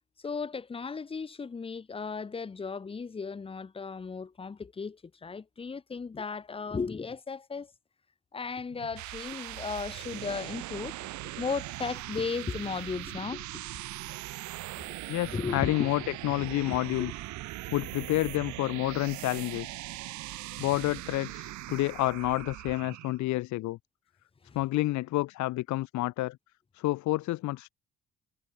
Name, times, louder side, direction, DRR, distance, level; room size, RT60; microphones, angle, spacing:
voice 1, 0.2-7.7 8.3-10.9 11.4-13.8 14.8-15.0 15.3-15.9 16.4-17.1 24.4-24.6, left 5 dB, 20° left, 0.5 m, -36 dB
sound 1, 8.7-23.2, right 17 dB, 70° right, 0.5 m, -40 dB
voice 2, 15.1-17.1 17.7-19.8 20.6-23.8 24.5-26.4 26.7-27.7, left 17 dB, 70° left, 0.5 m, -29 dB
cardioid pair, 90°, 30 cm